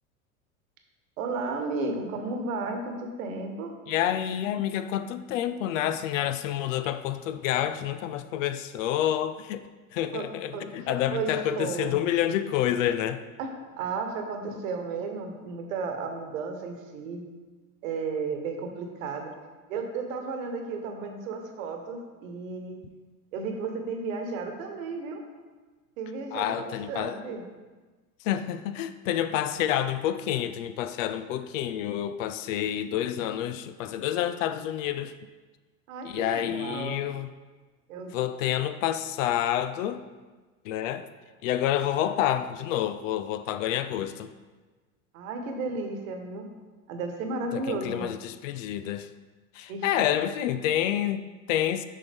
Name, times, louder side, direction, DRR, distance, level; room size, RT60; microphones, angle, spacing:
voice 1, 1.2-3.7 10.1-10.2 10.5-10.9 11.1-12.0 13.4-13.5 13.8-17.2 17.8-19.3 19.7-22.8 23.3-25.2 26.0-27.4 35.9-37.0 37.9-38.1 45.1-46.4 46.9-48.1 49.7-49.8, right 4 dB, 65° right, 4 dB, 1.2 m, -33 dB
voice 2, 3.9-13.2 26.3-27.2 28.2-35.1 36.0-37.3 38.1-40.0 40.6-41.1 41.4-44.3 47.5-49.1 49.5-51.8, left 11 dB, 60° left, 12 dB, 0.5 m, -28 dB
6.7 x 5.6 x 3.5 m, 1.3 s
hypercardioid pair, 90°, 43 cm